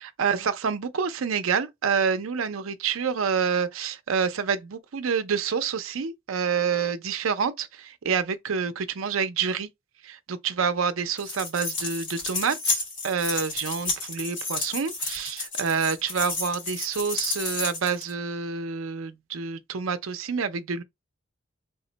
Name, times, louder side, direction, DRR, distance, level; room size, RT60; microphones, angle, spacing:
voice 1, 0.0-9.7 10.0-20.8, right 6 dB, 75° right, 0.5 m, -28 dB
sound 1, 11.2-18.1, left 3 dB, 60° left, 1.7 m, -31 dB
3.6 x 2.1 x 3.8 m
head